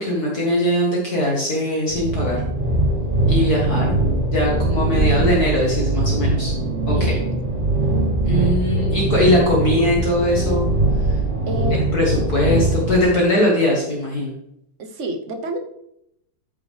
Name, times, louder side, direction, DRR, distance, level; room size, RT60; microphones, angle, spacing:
voice 1, 0.0-2.4 3.3-3.9 4.3-6.5 7.0-7.1 8.2-10.7 11.7-14.3, left 1 dB, 50° left, -3 dB, 2.1 m, -20 dB
sound 1, 1.9-13.0, right 2 dB, 25° right, 3.1 m, -21 dB
voice 2, 6.9-7.3 11.5-11.8 14.8-15.6, right 2 dB, 45° right, 5 dB, 1.1 m, -28 dB
13.5 x 5.6 x 3.4 m, 0.76 s
omnidirectional pair, 2.1 m